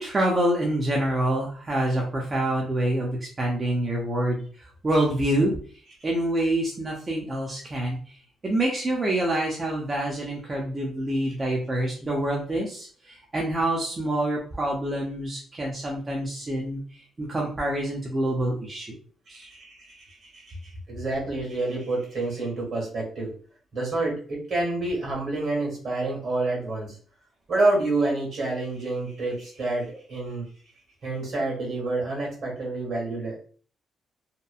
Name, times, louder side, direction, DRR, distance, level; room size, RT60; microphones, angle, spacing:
voice 1, 0.0-5.5 6.0-8.2 8.4-19.0 19.3-19.5, right 1 dB, 30° right, -2 dB, 0.6 m, -26 dB
voice 2, 19.3-23.3 23.7-27.0 27.5-30.5 31.0-33.4, right 2 dB, 60° right, -1 dB, 1.4 m, -28 dB
2.8 x 2.2 x 2.3 m, 0.43 s
cardioid pair, 90°, 0 cm